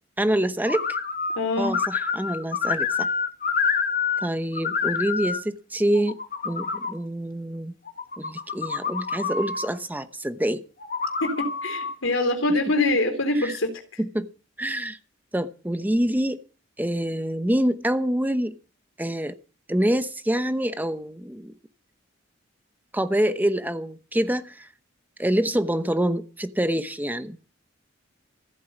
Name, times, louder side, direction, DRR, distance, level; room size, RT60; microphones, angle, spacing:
voice 1, 0.2-1.0 1.6-3.1 4.2-6.2 6.4-7.7 8.2-10.6 13.3-13.6 14.0-14.3 14.6-15.0 15.3-16.4 16.8-18.6 19.0-19.4 19.7-21.5 22.9-24.7 25.2-27.4, right 1 dB, 10° right, 0.9 m, -26 dB
sound 1, 0.7-1.4 1.6-4.3 4.5-5.4 5.9-6.9 7.9-9.7 10.8-12.0, left 5 dB, 45° left, 1.9 m, -27 dB
voice 2, 1.4-1.7 11.2-13.7, left 2 dB, 90° left, 3.7 m, -24 dB
15.5 x 8.4 x 8.2 m
head